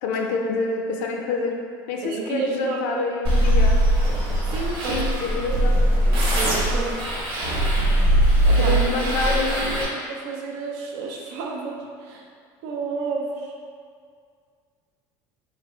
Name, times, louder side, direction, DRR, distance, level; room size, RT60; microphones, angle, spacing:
voice 1, 0.0-1.5 1.9-3.8 4.9-5.8 8.6-9.9, left 4 dB, 90° left, 1 dB, 0.4 m, -27 dB
voice 2, 2.0-3.1 4.4-5.0 5.5-5.6 6.0-7.2 8.5-8.8 9.2-9.3 9.9-12.3 12.6-13.5, right 4 dB, 85° right, 0 dB, 0.4 m, -31 dB
sound 1, 3.2-9.8, right 1 dB, 65° right, 0.9 m, -20 dB
3.2 x 2.3 x 2.9 m, 2.2 s
cardioid pair, 135°, 9 cm